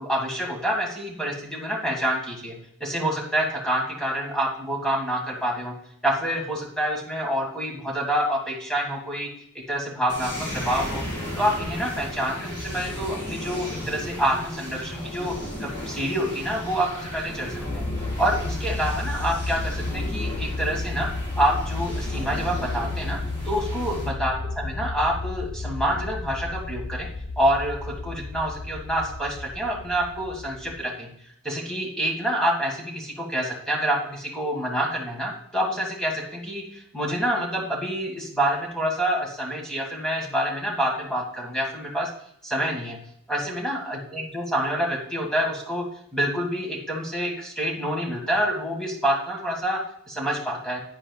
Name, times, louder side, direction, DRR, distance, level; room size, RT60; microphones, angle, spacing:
voice 1, 0.0-2.5 2.8-5.7 6.0-9.3 9.5-11.0 11.3-15.4 15.6-17.9 18.2-21.1 21.4-23.2 23.4-27.1 27.4-31.1 31.4-42.1 42.4-43.0 43.3-45.9 46.1-50.8, equal, 5° left, -1 dB, 1.8 m, -27 dB
sound 1, 10.1-24.1, left 1 dB, 25° left, 4.1 m, -35 dB
sound 2, 17.7-30.8, left 2 dB, 40° left, 0.4 m, -32 dB
10.5 x 9.4 x 2.3 m, 0.69 s
head